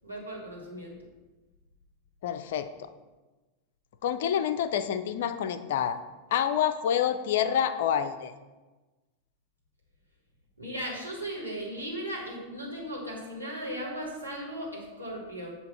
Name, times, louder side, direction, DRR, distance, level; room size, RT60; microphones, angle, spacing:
voice 1, 0.0-1.0 10.6-15.6, equal, 90° right, -4 dB, 1.9 m, -37 dB
voice 2, 2.2-2.9 4.0-6.0 6.3-8.3, left 9 dB, 55° left, 11 dB, 0.4 m, -27 dB
8.0 x 2.8 x 5.6 m, 1.2 s
figure-of-eight pair, 90°, 0 cm